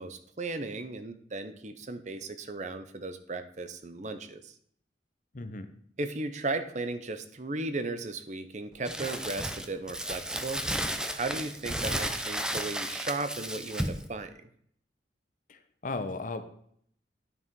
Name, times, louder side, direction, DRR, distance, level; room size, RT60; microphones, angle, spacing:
voice 1, 0.0-4.5 6.0-10.7 11.1-14.5, right 3 dB, 40° right, 10 dB, 0.7 m, -36 dB
voice 2, 5.3-5.7 15.5-16.4, left 3 dB, 45° left, 9 dB, 0.8 m, -36 dB
Crumpling crinkling, 8.9-14.1, right 1 dB, 5° right, 0.5 m, -33 dB
9.8 x 5.5 x 4.7 m, 0.64 s
head